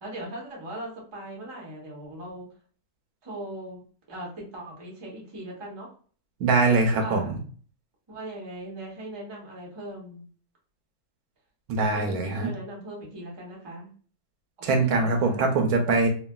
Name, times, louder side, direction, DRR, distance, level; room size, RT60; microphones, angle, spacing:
voice 1, 0.0-2.5 3.2-5.9 6.9-7.4 8.1-10.3 11.9-13.9 14.6-15.8, right 1 dB, 30° right, -3 dB, 0.4 m, -39 dB
voice 2, 6.4-7.4 11.7-12.5 14.6-16.1, right 3 dB, 70° right, 3 dB, 1.0 m, -23 dB
3.1 x 2.3 x 2.2 m, 0.43 s
omnidirectional pair, 1.9 m